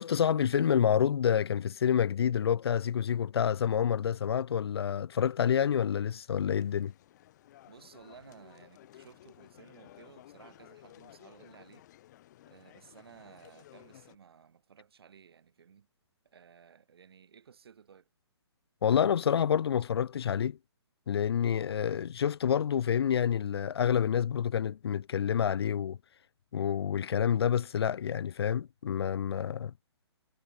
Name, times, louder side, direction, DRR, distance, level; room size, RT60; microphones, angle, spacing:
voice 1, 0.0-6.9 18.8-20.6 21.1-26.0 26.5-29.7, left 8 dB, 65° left, 0.4 m, -28 dB
sound 1, 6.5-14.2, left 14 dB, 40° left, 4.1 m, -56 dB
voice 2, 7.7-11.9 12.4-15.9 16.2-18.1, right 7 dB, 60° right, 3.7 m, -56 dB
figure-of-eight pair, 135°, 14 cm